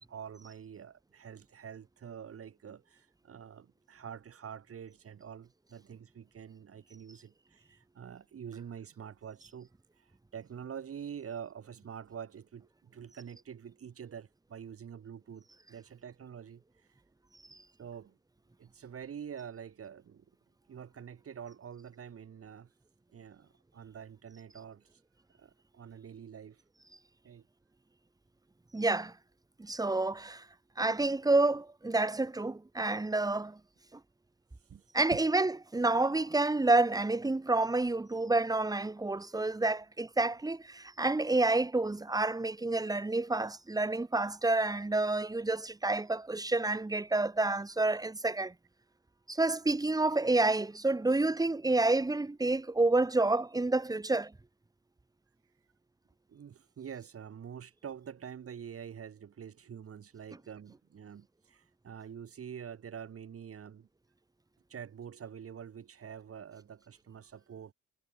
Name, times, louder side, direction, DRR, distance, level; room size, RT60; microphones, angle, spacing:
voice 1, 0.1-16.9 17.8-18.2 18.6-20.2 20.7-22.7 23.1-25.0 25.4-26.6 27.2-27.4 34.6-34.9 35.1-35.3 56.3-63.9 64.7-67.7, right 8 dB, 45° right, 7.1 m, -46 dB
voice 2, 28.7-29.1 29.6-30.4 30.8-33.6 34.9-48.5 49.3-54.3, right 2 dB, 10° right, 2.7 m, -29 dB
cardioid pair, 150°, 31 cm